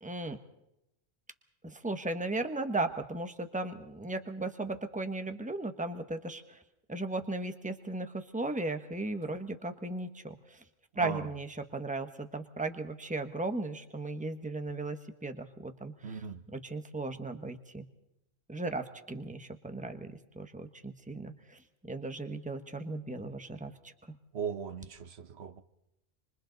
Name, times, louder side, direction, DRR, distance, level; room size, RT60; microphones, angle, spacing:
voice 1, 0.0-0.4 1.6-6.6 6.9-10.6 11.0-15.0 15.2-16.3 16.5-17.8 18.5-23.9, right 2 dB, 5° right, 1.1 m, -36 dB
voice 2, 16.0-16.4 24.3-25.6, right 7 dB, 75° right, 1.2 m, -38 dB
27.0 x 25.5 x 4.0 m
omnidirectional pair, 1.1 m